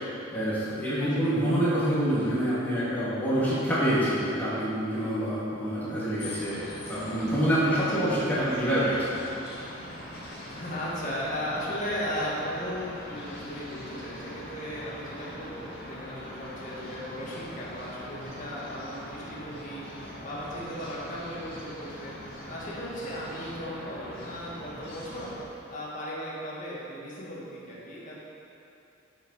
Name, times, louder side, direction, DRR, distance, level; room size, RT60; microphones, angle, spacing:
voice 1, 0.3-6.6 6.9-9.3, right 1 dB, 10° left, -12 dB, 2.3 m, -26 dB
voice 2, 0.9-1.3 7.7-8.2 10.5-25.4 25.7-28.1, equal, 40° left, -7 dB, 2.0 m, -36 dB
sound 1, 6.2-25.4, left 1 dB, 55° left, 2.2 m, -42 dB
7.8 x 6.9 x 5.6 m, 2.9 s
head